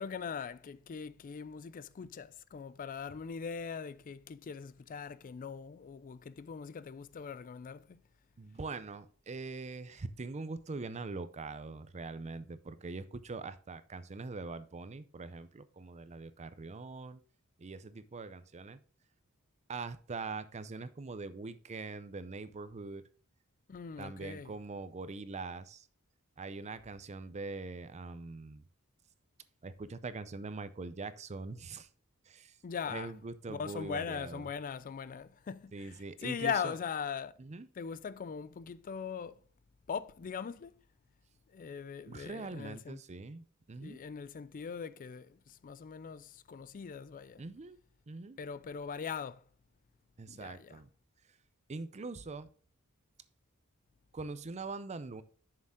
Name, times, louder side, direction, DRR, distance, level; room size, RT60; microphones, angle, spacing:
voice 1, 0.0-8.0 23.7-24.5 32.6-33.1 33.5-37.3 37.8-39.4 39.9-40.7 41.5-43.0 43.8-47.4 48.4-49.4 50.3-50.8, left 6 dB, 40° left, 0.4 m, -40 dB
voice 2, 8.4-17.2 17.6-18.8 19.7-23.0 24.0-25.9 26.4-28.6 29.6-31.9 32.3-32.6 32.9-34.5 35.7-36.8 37.4-37.7 42.1-44.0 47.4-47.8 48.1-48.4 50.2-50.9 51.7-52.5 54.1-55.2, right 3 dB, 30° right, 0.5 m, -43 dB
7.2 x 6.6 x 3.6 m
head